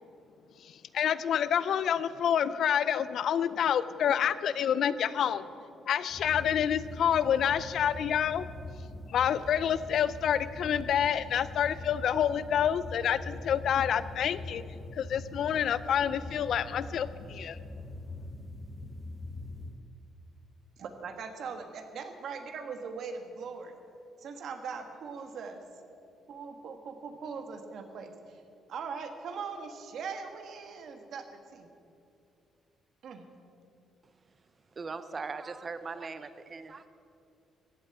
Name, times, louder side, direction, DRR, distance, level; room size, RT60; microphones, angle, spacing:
voice 1, 0.9-5.4 5.9-8.5 9.1-14.6 14.9-17.6, left 9 dB, 65° left, 16 dB, 0.5 m, -28 dB
sound 1, 6.1-19.8, left 2 dB, 5° left, 1.6 m, -43 dB
voice 2, 20.8-23.7 24.2-25.6 26.3-28.4 28.7-31.7 33.0-33.3, right 5 dB, 65° right, 6 dB, 1.5 m, -40 dB
voice 3, 34.8-36.9, right 4 dB, 35° right, 12 dB, 0.7 m, -39 dB
15.5 x 8.5 x 7.9 m, 2.6 s
cardioid pair, 110°, 0 cm